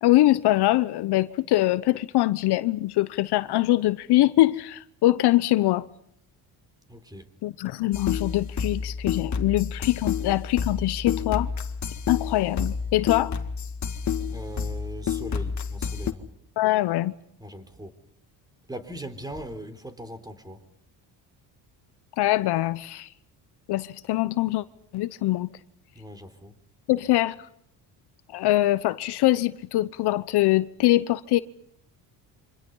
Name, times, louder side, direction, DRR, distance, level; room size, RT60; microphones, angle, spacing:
voice 1, 0.0-5.9 7.4-11.5 12.1-13.3 16.6-17.1 22.1-23.1 23.7-24.6 24.9-25.5 26.9-27.5 28.3-31.4, left 16 dB, 70° left, 1.0 m, -23 dB
voice 2, 6.9-7.3 14.3-16.3 17.4-17.9 18.7-20.6 26.0-26.6, right 1 dB, 10° right, 3.9 m, -40 dB
sound 1, 7.9-16.1, left 6 dB, 45° left, 2.0 m, -29 dB
27.5 x 26.0 x 5.6 m
cardioid pair, 100°, 41 cm